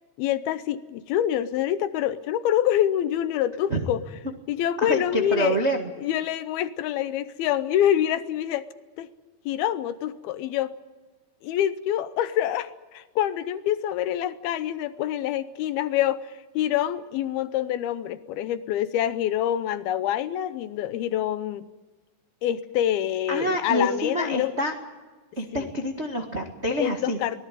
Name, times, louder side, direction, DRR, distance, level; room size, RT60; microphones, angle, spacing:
voice 1, 0.2-4.0 4.5-5.6 6.0-8.7 9.0-9.1 9.5-10.7 11.4-21.7 22.4-24.5 25.5-25.7 26.8-27.5, left 11 dB, 75° left, 13 dB, 2.6 m, -26 dB
voice 2, 4.8-5.9 23.3-24.7 25.4-27.2, right 1 dB, 55° right, 2 dB, 0.7 m, -27 dB
24.0 x 18.5 x 9.2 m, 1.3 s
omnidirectional pair, 4.6 m